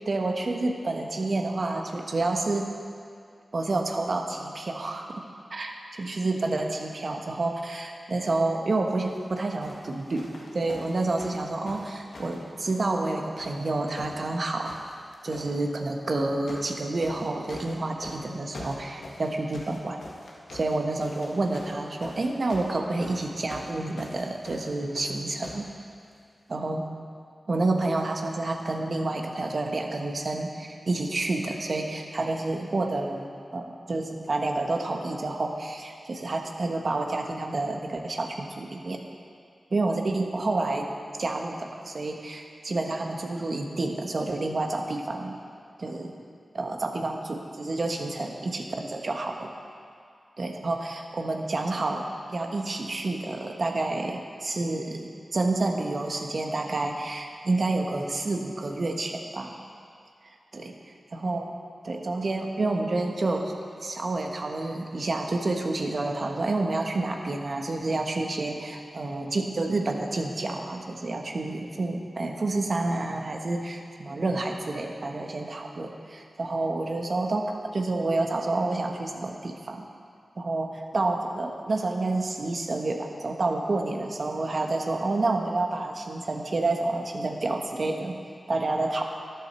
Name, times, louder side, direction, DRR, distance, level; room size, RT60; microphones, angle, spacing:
voice 1, 0.0-2.7 3.5-5.1 5.5-5.7 6.0-14.8 15.2-20.0 20.5-25.7 26.5-26.9 27.5-39.0 39.7-40.9 41.2-45.4 45.8-46.2 46.5-49.5 50.4-59.6 60.5-60.7 61.1-61.5 61.8-63.5 63.8-79.9 80.4-88.1 88.5-89.0, right 2 dB, 60° right, 3 dB, 1.3 m, -29 dB
sound 1, 9.0-9.2 9.6-13.1 13.4-14.3 14.6-15.5 16.1-16.7 17.0-25.7 26.5-26.6, left 2 dB, 90° left, 1.6 m, -44 dB
13.0 x 11.0 x 4.4 m, 2.2 s
cardioid pair, 45°, 0 cm